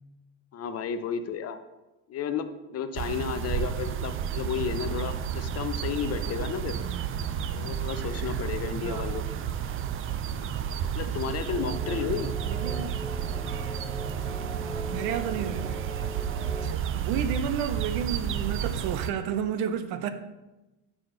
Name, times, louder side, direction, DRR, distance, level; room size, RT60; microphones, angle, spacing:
voice 1, 0.5-1.6 2.1-6.8 7.5-9.2 10.3-10.5 10.9-12.3, left 7 dB, 40° left, 0.5 m, -32 dB
sound 1, 3.0-19.1, right 8 dB, 35° right, 0.4 m, -31 dB
voice 2, 6.7-7.1 8.8-9.3 12.5-13.0 14.6-15.9 16.7-20.1, right 8 dB, 65° right, 0.7 m, -32 dB
sound 2, 11.5-16.7, right 1 dB, ahead, 0.9 m, -39 dB
6.1 x 4.9 x 3.8 m
supercardioid pair, 90°, 40 cm